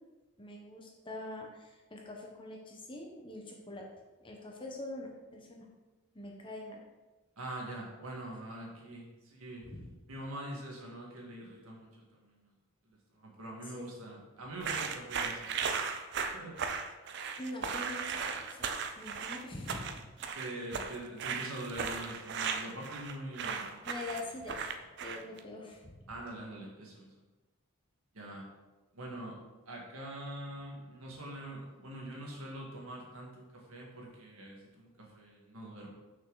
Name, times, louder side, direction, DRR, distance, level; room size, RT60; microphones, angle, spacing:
voice 1, 0.4-3.9 4.2-5.7 6.1-6.8 9.7-9.9 13.7-13.9 17.4-20.0 23.8-24.6 25.0-25.9, left 2 dB, 25° left, 0 dB, 1.0 m, -44 dB
voice 2, 7.4-9.7 10.1-12.4 13.1-15.7 16.3-16.6 20.3-23.8 26.1-27.1 28.1-28.5 28.9-35.9, right 1 dB, 80° right, -1 dB, 1.8 m, -44 dB
sound 1, 14.6-25.4, right 6 dB, 50° right, 0.5 m, -36 dB
6.4 x 5.8 x 3.9 m, 1.2 s
head